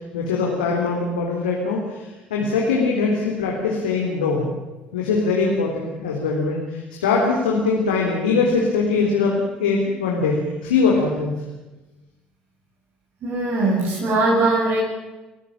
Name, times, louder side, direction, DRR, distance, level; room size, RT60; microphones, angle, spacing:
voice 1, 0.1-4.5 4.9-11.4, left 4 dB, 75° left, -1 dB, 3.6 m, -22 dB
voice 2, 13.2-14.8, right 2 dB, 50° right, -6 dB, 7.6 m, -20 dB
29.5 x 15.5 x 7.5 m, 1.1 s
figure-of-eight pair, 60°, 5 cm